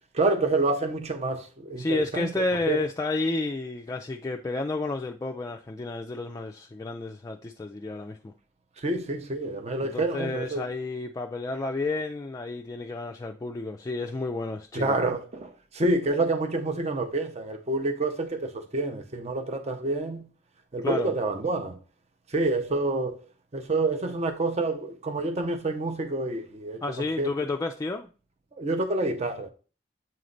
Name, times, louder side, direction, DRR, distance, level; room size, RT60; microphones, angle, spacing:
voice 1, 0.1-2.8 8.8-10.7 14.7-20.3 20.7-21.8 22.3-23.2 23.5-27.4 28.5-29.5, right 2 dB, 35° right, 0.7 m, -28 dB
voice 2, 1.8-8.3 9.8-15.0 20.8-21.1 26.8-28.1, left 3 dB, 20° left, 0.3 m, -31 dB
7.7 x 3.2 x 3.8 m
head